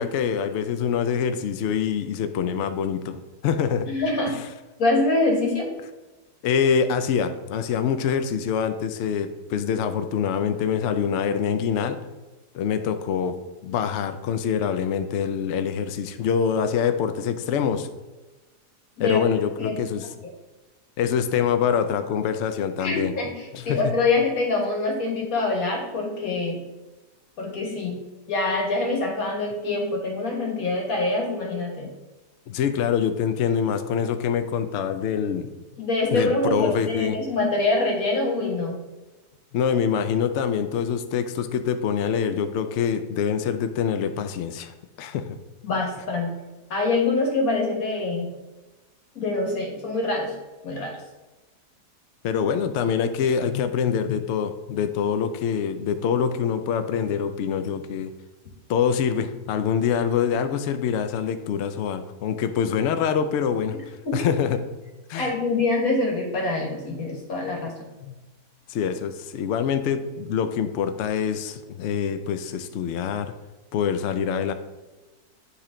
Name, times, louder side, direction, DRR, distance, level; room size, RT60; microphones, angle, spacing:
voice 1, 0.0-3.9 4.3-4.5 6.4-12.0 12.5-13.4 13.6-17.9 19.0-20.1 21.0-23.1 23.5-23.9 32.5-35.5 36.1-37.2 39.5-45.3 52.2-58.1 58.7-64.6 65.1-65.3 68.0-68.2 68.7-73.3 73.7-74.5, left 7 dB, 80° left, 9 dB, 0.6 m, -25 dB
voice 2, 3.9-4.3 4.8-5.7 19.0-19.2 19.6-19.8 22.8-26.6 27.4-28.0 28.3-31.9 35.8-38.8 45.6-46.3 46.7-48.3 49.2-50.3 50.6-50.9 64.1-64.3 65.1-67.7, left 2 dB, 60° left, 0 dB, 1.9 m, -25 dB
9.9 x 3.4 x 3.7 m, 1.1 s
omnidirectional pair, 1.7 m